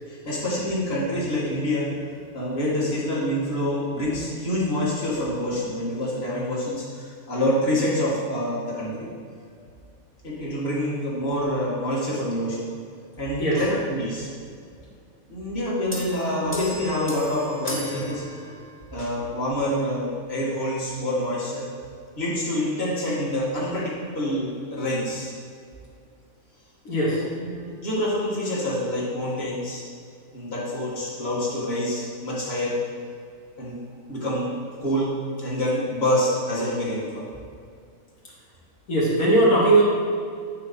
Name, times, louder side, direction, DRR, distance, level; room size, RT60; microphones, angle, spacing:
voice 1, 0.1-1.9 2.3-9.1 10.2-12.7 13.2-14.3 15.3-18.2 18.9-21.6 22.2-25.3 27.1-29.8 30.3-32.8 33.6-33.8 34.1-35.1 35.4-37.3, left 1 dB, 35° left, -7 dB, 2.0 m, -27 dB
sound 1, 15.9-18.9, left 2 dB, 10° left, 0.7 m, -34 dB
voice 2, 26.9-27.2 38.9-39.8, right 2 dB, 80° left, -6 dB, 2.2 m, -19 dB
8.9 x 3.8 x 5.7 m, 2.3 s
omnidirectional pair, 1.4 m